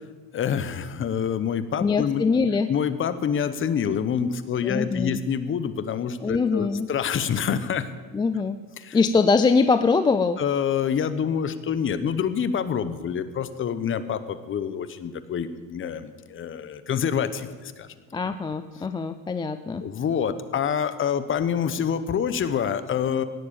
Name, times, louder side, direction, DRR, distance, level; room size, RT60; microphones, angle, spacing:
voice 1, 0.3-2.2 2.7-7.9 8.8-9.0 10.4-17.9 19.8-23.2, left 7 dB, 30° left, 12 dB, 1.0 m, -27 dB
voice 2, 1.8-2.7 4.6-5.2 6.2-6.9 8.1-8.6 8.9-10.4 18.1-19.8, left 4 dB, 10° left, 10 dB, 0.4 m, -22 dB
17.5 x 7.4 x 8.8 m, 1.4 s
supercardioid pair, 125°, 39 cm